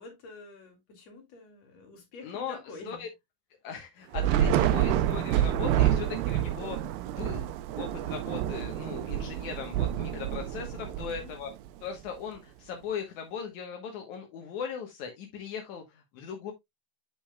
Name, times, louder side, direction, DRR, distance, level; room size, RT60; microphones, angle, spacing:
voice 1, 0.0-3.0 11.0-11.3, left 3 dB, 45° left, 3.1 m, -48 dB
voice 2, 2.2-3.1 3.6-7.5 7.8-11.5 11.8-16.5, left 7 dB, 65° left, 2.0 m, -39 dB
Thunder / Rain, 4.1-11.7, right 11 dB, 85° right, 2.0 m, -28 dB
8.4 x 7.0 x 2.3 m
omnidirectional pair, 4.8 m